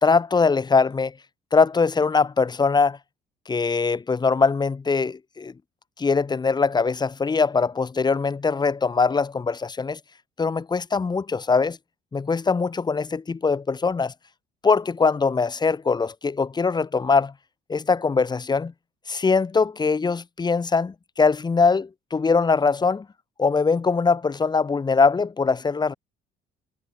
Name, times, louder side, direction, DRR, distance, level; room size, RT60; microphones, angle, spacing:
voice 1, 0.0-1.1 1.5-3.0 3.5-5.5 6.0-10.0 10.4-11.8 12.1-14.1 14.6-17.3 17.7-18.7 19.1-23.1 23.4-25.9, left 4 dB, 25° left, 2.6 m, -22 dB
cardioid pair, 110°, 17 cm